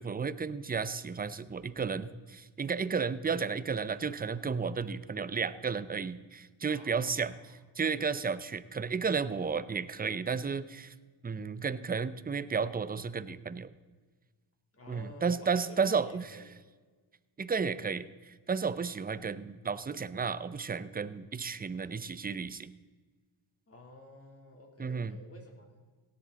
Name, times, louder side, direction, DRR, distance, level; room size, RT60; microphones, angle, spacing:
voice 1, 0.0-7.3 7.8-10.9 11.2-13.7 14.9-16.3 17.4-22.7 24.8-25.2, right 5 dB, 20° right, 15 dB, 0.6 m, -33 dB
voice 2, 6.7-7.6 14.7-16.5 23.7-25.8, left 1 dB, 30° left, 1 dB, 3.3 m, -52 dB
17.0 x 7.8 x 4.1 m, 1.4 s
cardioid pair, 70°, 50 cm